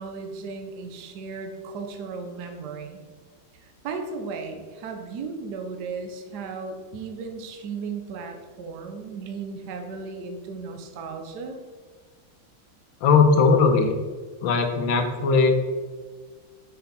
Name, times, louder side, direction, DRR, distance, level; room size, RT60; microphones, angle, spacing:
voice 1, 0.0-3.0 3.6-11.6, right 4 dB, 65° right, 5 dB, 1.1 m, -35 dB
voice 2, 13.0-14.0 14.4-15.7, left 4 dB, 70° left, 5 dB, 1.5 m, -19 dB
6.1 x 5.8 x 4.1 m, 1.5 s
omnidirectional pair, 2.3 m